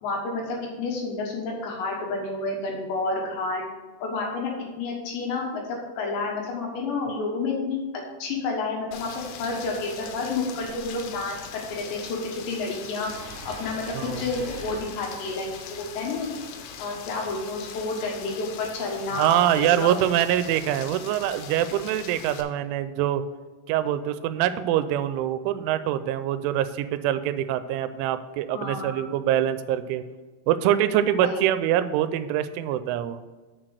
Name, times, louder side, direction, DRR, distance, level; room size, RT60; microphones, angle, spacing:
voice 1, 0.0-3.6 4.0-4.5 4.8-5.6 5.9-7.8 8.2-16.3 16.8-19.9 28.5-29.1 31.2-31.4, left 3 dB, 70° left, -1 dB, 3.3 m, -30 dB
Rain, 8.9-22.4, left 7 dB, 85° left, 3.3 m, -41 dB
sound 1, 13.0-16.9, right 2 dB, 35° right, 3.2 m, -45 dB
voice 2, 19.1-23.2 23.7-30.0 30.5-33.2, right 11 dB, 85° right, 12 dB, 3.0 m, -24 dB
6.8 x 5.9 x 6.3 m, 1.3 s
omnidirectional pair, 5.4 m